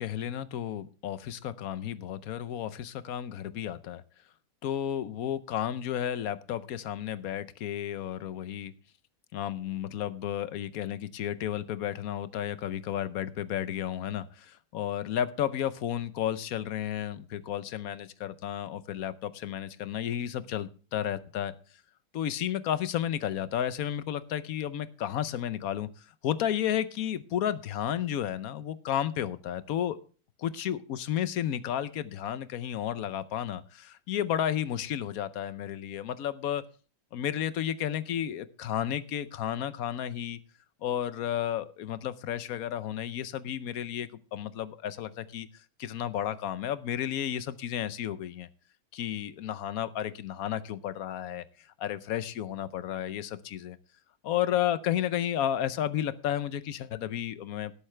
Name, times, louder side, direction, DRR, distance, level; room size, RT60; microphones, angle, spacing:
voice 1, 0.0-4.0 4.6-8.7 9.3-21.5 22.1-30.0 30.4-36.6 37.1-40.4 40.8-45.5 45.8-48.5 48.9-51.4 51.8-53.8 54.2-57.7, left 10 dB, 75° left, 14 dB, 1.2 m, -32 dB
17.5 x 8.2 x 3.3 m, 0.39 s
omnidirectional pair, 1.5 m